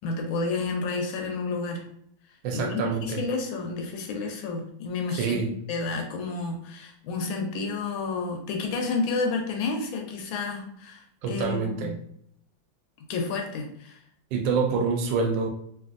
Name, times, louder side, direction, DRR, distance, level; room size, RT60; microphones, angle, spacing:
voice 1, 0.0-1.8 2.5-5.4 5.7-12.0 13.1-14.0, left 3 dB, 90° left, 3 dB, 1.4 m, -30 dB
voice 2, 2.4-3.2 5.1-5.5 11.2-11.9 14.3-15.5, right 5 dB, 75° right, 3 dB, 1.2 m, -26 dB
3.2 x 2.6 x 2.4 m, 0.68 s
omnidirectional pair, 2.1 m